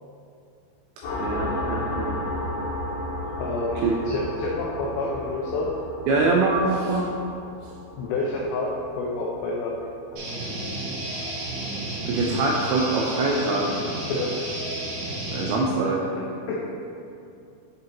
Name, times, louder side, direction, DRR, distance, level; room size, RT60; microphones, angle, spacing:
sound 1, 1.0-10.3, left 1 dB, 75° left, 3.2 m, -33 dB
voice 1, 1.2-2.1 3.8-3.9 6.1-7.1 12.1-13.7 15.3-16.0, right 3 dB, 85° right, -2 dB, 2.6 m, -23 dB
voice 2, 3.4-5.7 8.0-9.8 14.1-14.3 16.5-16.7, left 2 dB, 90° left, -3 dB, 2.4 m, -28 dB
sound 2, 10.2-15.5, right 1 dB, 70° right, 3.8 m, -32 dB
10.0 x 3.8 x 2.9 m, 2.5 s
omnidirectional pair, 5.6 m